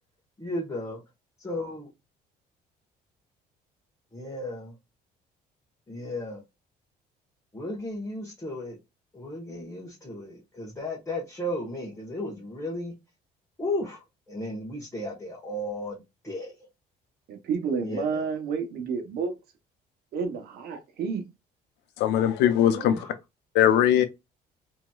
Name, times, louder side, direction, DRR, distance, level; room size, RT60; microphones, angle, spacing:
voice 1, 0.4-1.0 1.4-1.9 4.1-4.7 5.9-6.4 7.5-8.8 9.1-12.9 13.6-16.6 17.8-18.3 22.7-23.1, left 1 dB, 15° left, 1.1 m, -34 dB
voice 2, 17.3-19.3 20.1-21.2, right 5 dB, 65° right, 1.0 m, -30 dB
voice 3, 22.0-23.1 23.5-24.1, left 10 dB, 85° left, 0.6 m, -20 dB
3.0 x 2.7 x 2.3 m
cardioid pair, 110°, 17 cm